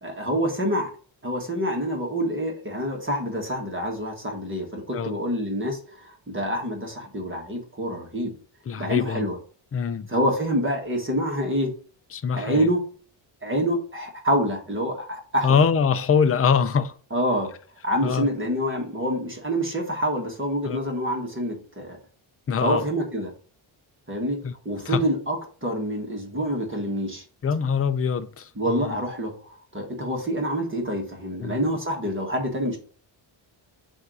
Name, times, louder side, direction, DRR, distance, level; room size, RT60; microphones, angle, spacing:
voice 1, 0.0-0.9 1.2-8.3 8.8-9.4 10.1-11.7 12.3-12.8 13.4-15.6 17.1-17.5 17.8-22.0 22.6-23.3 24.1-24.4 24.6-27.2 28.6-32.8, equal, 25° right, 1.6 m, -27 dB
voice 2, 8.7-9.2 9.7-10.1 12.1-12.7 15.4-16.9 18.0-18.3 20.6-20.8 22.5-22.8 24.4-24.5 24.8-25.0 27.4-29.0 31.4-31.6, left 6 dB, 30° left, 0.5 m, -23 dB
7.1 x 2.7 x 4.8 m
cardioid pair, 110°, 48 cm